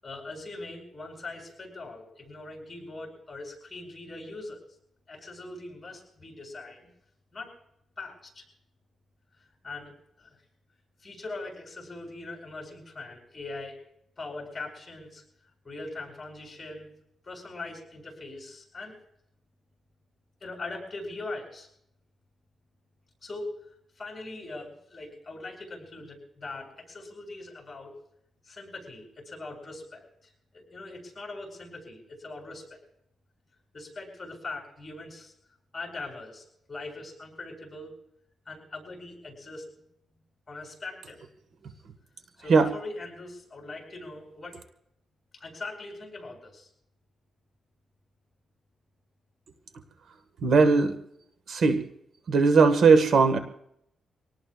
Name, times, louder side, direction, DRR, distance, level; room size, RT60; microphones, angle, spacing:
voice 1, 0.0-4.6 5.1-6.9 7.3-7.5 8.0-8.5 9.6-9.9 10.2-10.4 11.0-13.8 14.2-15.2 15.6-16.9 17.2-19.0 20.4-21.7 23.2-23.5 24.0-28.0 28.4-32.8 33.7-35.3 35.7-38.0 38.5-39.8 40.5-41.2 42.4-44.6 45.3-46.7, left 2 dB, 25° left, -1 dB, 7.9 m, -41 dB
voice 2, 50.4-50.9 51.5-51.8 52.3-53.4, right 4 dB, 65° right, 7 dB, 1.7 m, -19 dB
26.5 x 18.5 x 2.5 m, 0.73 s
cardioid pair, 115°, 0 cm